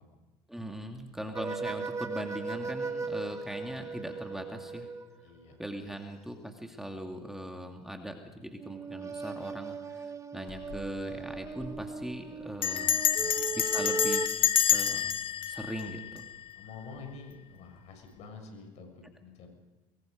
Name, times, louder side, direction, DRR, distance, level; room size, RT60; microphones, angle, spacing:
voice 1, 0.5-4.9 5.6-13.0 13.5-16.2, right 1 dB, 5° right, 3 dB, 2.5 m, -40 dB
sound 1, 1.3-5.2 8.6-14.3, right 4 dB, 25° right, 1.4 m, -37 dB
voice 2, 5.2-5.6 13.2-13.4 16.6-19.5, left 4 dB, 60° left, 4 dB, 6.8 m, -47 dB
Bell, 10.5-10.9 11.1-11.2 11.4-11.8 12.6-16.7, left 10 dB, 45° left, 1.4 m, -28 dB
23.5 x 22.0 x 5.3 m, 1.2 s
supercardioid pair, 95°, 12 cm